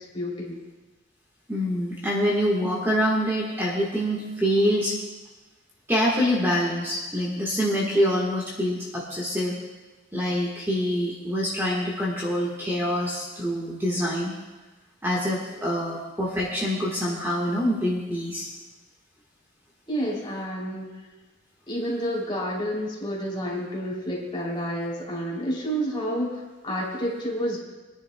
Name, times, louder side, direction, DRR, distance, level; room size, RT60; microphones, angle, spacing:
voice 1, 0.1-0.6 19.9-20.9 21.7-27.6, equal, 25° left, -4 dB, 3.0 m, -29 dB
voice 2, 1.5-4.9 5.9-9.6 10.1-14.3 15.0-18.5, equal, 10° right, -4 dB, 1.4 m, -25 dB
24.0 x 10.5 x 2.2 m, 1.2 s
head